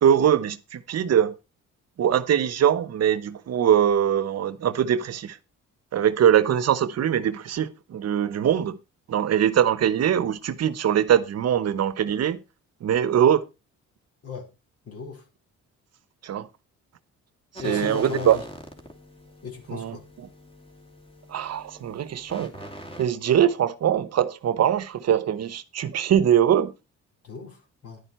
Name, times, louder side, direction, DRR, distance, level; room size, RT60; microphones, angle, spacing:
voice 1, 0.0-1.4 2.0-5.4 5.9-8.8 9.1-12.4 12.8-13.4 16.2-16.5 17.6-18.4 19.7-20.0 21.3-22.5 23.0-26.7, right 9 dB, 55° right, 1.0 m, -22 dB
voice 2, 14.9-15.2 17.6-18.4 19.4-20.0 27.2-28.0, left 4 dB, 50° left, 4.3 m, -36 dB
sound 1, 17.6-23.0, equal, 20° left, 2.9 m, -42 dB
11.0 x 9.1 x 4.3 m
cardioid pair, 90°, 30 cm